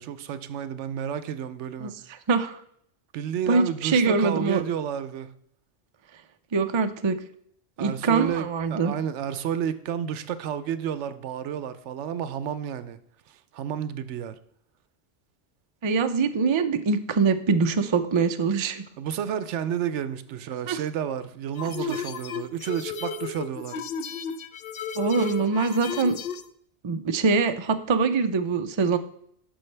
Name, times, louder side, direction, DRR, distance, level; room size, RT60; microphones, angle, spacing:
voice 1, 0.0-1.9 3.1-5.3 7.8-13.0 13.3-14.4 19.0-23.8, right 9 dB, 80° right, 0.9 m, -31 dB
voice 2, 2.3-2.6 3.5-4.6 6.5-7.2 7.8-8.9 15.8-18.8 20.7-20.8 21.8-22.0 25.0-26.2 26.8-29.0, right 4 dB, 45° right, 0.3 m, -23 dB
sound 1, 21.6-26.5, left 7 dB, 60° left, 0.7 m, -34 dB
9.9 x 6.3 x 3.3 m
omnidirectional pair, 1.2 m